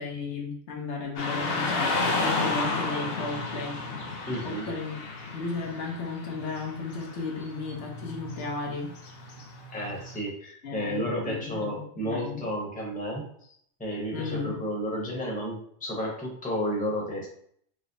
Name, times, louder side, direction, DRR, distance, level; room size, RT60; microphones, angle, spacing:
voice 1, 0.0-5.0 5.3-8.9 10.6-12.4 14.1-14.6, left 3 dB, 80° left, 0 dB, 1.1 m, -34 dB
Car passing by / Traffic noise roadway noise, 1.2-10.2, left 3 dB, 60° left, 0.8 m, -32 dB
voice 2, 4.3-4.7 9.7-13.3 13.8-17.3, equal, 10° left, -3 dB, 0.7 m, -32 dB
4.8 x 2.0 x 2.6 m, 0.64 s
omnidirectional pair, 1.2 m